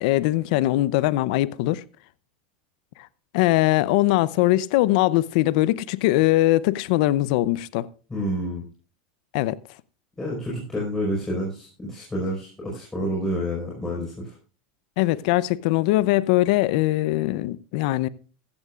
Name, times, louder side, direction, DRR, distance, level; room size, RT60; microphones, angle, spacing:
voice 1, 0.0-1.8 3.3-7.9 9.3-9.6 15.0-18.1, left 17 dB, 65° left, 0.7 m, -21 dB
voice 2, 8.1-8.6 10.2-14.3, equal, 10° left, 5.0 m, -29 dB
15.0 x 14.5 x 2.5 m
supercardioid pair, 135°, 5 cm